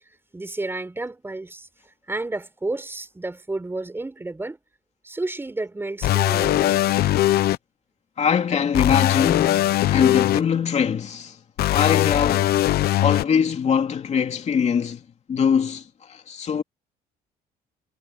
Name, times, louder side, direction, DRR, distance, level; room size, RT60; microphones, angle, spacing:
voice 1, 0.3-1.7 2.1-4.6 5.0-7.1, right 2 dB, 15° right, 5.0 m, -31 dB
sound 1, 6.0-7.6 8.7-10.4 11.6-13.2, left 14 dB, 70° left, 0.8 m, -20 dB
voice 2, 8.2-11.4 11.7-12.5 13.0-15.0 15.3-16.6, left 7 dB, 40° left, 2.8 m, -22 dB
cardioid pair, 110°, 17 cm